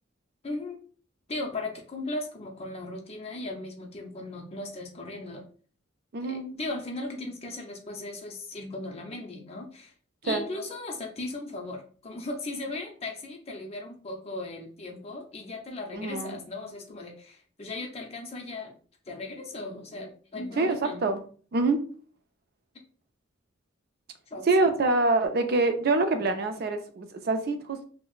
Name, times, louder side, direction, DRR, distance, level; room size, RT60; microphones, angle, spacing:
voice 1, 0.4-0.8 1.3-5.5 6.2-9.9 10.2-18.7 19.1-21.1 24.3-24.5, left 2 dB, 30° left, 1 dB, 0.6 m, -37 dB
voice 2, 6.1-6.6 10.2-10.5 15.9-16.4 20.6-21.2 21.5-21.8 24.5-27.8, right 3 dB, 50° right, 7 dB, 0.4 m, -25 dB
3.9 x 2.0 x 2.4 m, 0.42 s
head